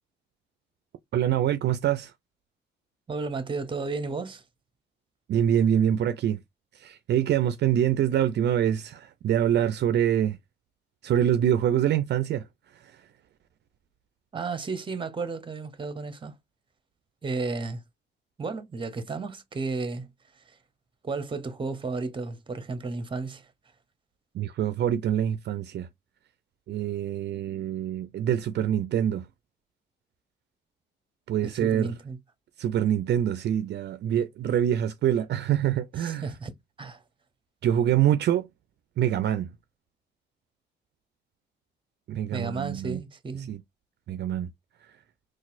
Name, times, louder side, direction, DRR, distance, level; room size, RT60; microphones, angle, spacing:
voice 1, 1.1-2.1 5.3-6.4 6.7-10.4 11.0-12.5 12.7-13.0 24.3-25.9 26.7-29.3 31.3-31.9 32.6-36.3 37.6-38.5 39.0-39.5 42.1-43.0 43.5-43.6 44.1-44.5, right 10 dB, 60° right, 0.4 m, -25 dB
voice 2, 3.1-4.4 14.3-16.4 17.2-17.8 18.4-20.1 20.3-20.6 21.0-23.5 31.4-32.2 36.0-36.5 36.8-37.0 42.3-43.5, right 4 dB, 25° right, 0.8 m, -33 dB
3.9 x 2.5 x 2.5 m
cardioid pair, 90°, 20 cm